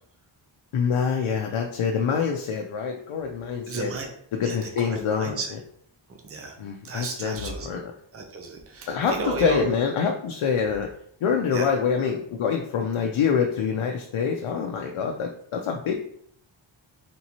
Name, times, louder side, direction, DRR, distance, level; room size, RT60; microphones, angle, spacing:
voice 1, 0.7-3.9 4.3-5.6 6.6-7.9 8.9-10.9 11.2-15.9, left 6 dB, 80° left, 2 dB, 0.6 m, -26 dB
voice 2, 3.7-4.1 4.4-5.5 6.2-6.6 6.8-7.7 8.1-9.7 11.5-11.7, right 4 dB, 30° right, 3 dB, 0.6 m, -33 dB
4.1 x 3.5 x 2.9 m, 0.65 s
wide cardioid pair, 140°, 49 cm